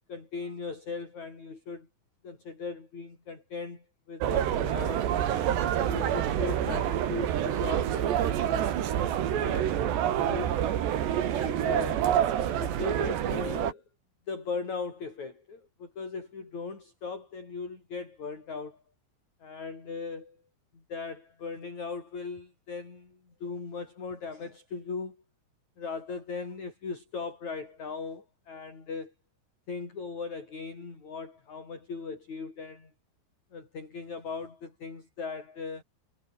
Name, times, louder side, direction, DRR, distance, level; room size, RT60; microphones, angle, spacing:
voice 1, 0.1-1.9 2.2-5.1 5.7-9.7 10.2-10.6 11.3-13.8 14.3-18.8 19.4-20.4 20.7-25.2 25.8-29.1 29.7-32.9 33.5-35.8, left 4 dB, 40° left, 7.1 m, -38 dB
sound 1, 4.2-13.7, right 10 dB, 70° right, 4.3 m, -27 dB
omnidirectional pair, 5.1 m